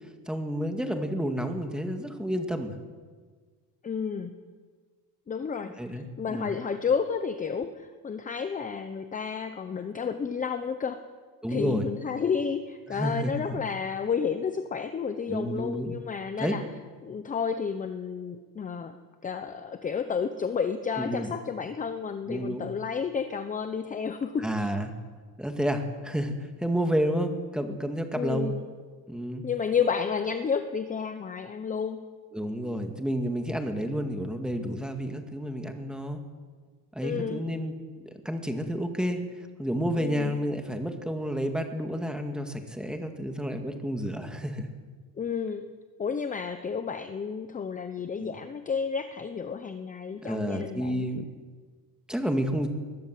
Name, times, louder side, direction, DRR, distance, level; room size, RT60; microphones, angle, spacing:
voice 1, 0.3-2.8 5.8-6.5 11.4-11.9 12.9-13.6 15.3-16.0 16.4-16.6 21.0-21.3 22.3-22.6 24.4-24.9 25.4-28.5 29.1-29.5 32.3-36.2 37.0-37.7 38.3-39.2 39.6-44.7 48.2-48.3 50.2-51.2 52.1-52.7, equal, ahead, 5 dB, 2.1 m, -30 dB
voice 2, 3.8-4.4 5.3-11.0 11.5-16.7 17.0-19.0 19.2-24.7 28.1-28.6 29.4-32.1 37.0-37.5 40.0-40.4 45.2-45.7 46.0-51.1, left 6 dB, 20° left, 9 dB, 0.9 m, -31 dB
21.0 x 21.0 x 7.7 m, 1.5 s
cardioid pair, 160°, 37 cm